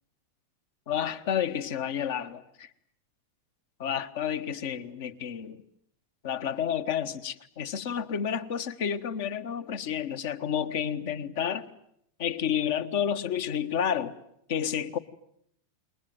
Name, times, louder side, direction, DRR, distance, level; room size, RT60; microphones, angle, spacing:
voice 1, 0.9-2.7 3.8-5.6 6.2-11.7 12.2-14.2 14.5-15.0, left 8 dB, 50° left, 1.3 m, -30 dB
28.0 x 22.0 x 9.3 m
figure-of-eight pair, 90°, 0 cm